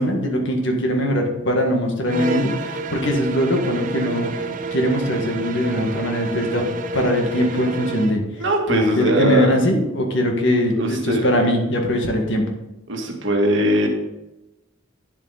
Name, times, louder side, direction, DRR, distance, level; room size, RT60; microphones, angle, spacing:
voice 1, 0.0-4.3 4.7-6.6 6.9-8.2 8.7-12.4, equal, 60° left, 2 dB, 1.8 m, -21 dB
sound 1, 2.0-8.2, right 3 dB, 40° right, 0.7 m, -29 dB
voice 2, 8.4-9.5 10.8-11.2 12.9-13.9, right 1 dB, 60° right, 2 dB, 1.7 m, -20 dB
9.9 x 7.6 x 4.1 m, 0.97 s
head